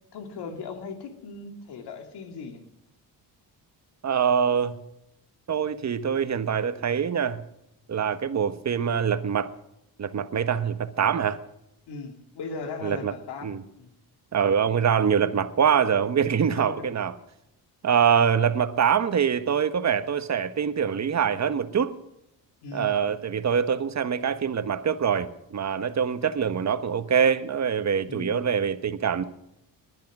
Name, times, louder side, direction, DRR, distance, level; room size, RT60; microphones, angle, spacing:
voice 1, 0.1-2.6 11.9-13.9 16.5-16.9 22.6-23.0 28.0-28.4, left 4 dB, 75° left, 6 dB, 2.5 m, -38 dB
voice 2, 4.0-4.8 5.5-7.4 7.9-9.5 10.0-11.4 12.8-13.1 13.4-13.6 14.3-17.1 17.8-21.9 22.7-29.2, right 7 dB, 40° right, 11 dB, 1.4 m, -24 dB
20.5 x 10.5 x 6.2 m, 0.83 s
cardioid pair, 85°, 40 cm